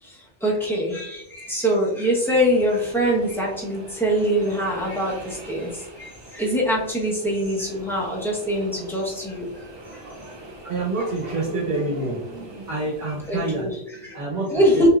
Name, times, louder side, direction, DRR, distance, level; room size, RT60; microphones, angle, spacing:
voice 1, 0.0-9.7 9.9-10.0 13.3-13.7 14.0-14.2 14.5-14.9, equal, ahead, -4 dB, 0.9 m, -23 dB
sound 1, 2.2-13.6, right 1 dB, 40° right, 0.3 m, -43 dB
voice 2, 9.9-14.9, right 2 dB, 65° right, -5 dB, 1.3 m, -28 dB
5.3 x 2.9 x 2.4 m, 0.84 s
omnidirectional pair, 1.3 m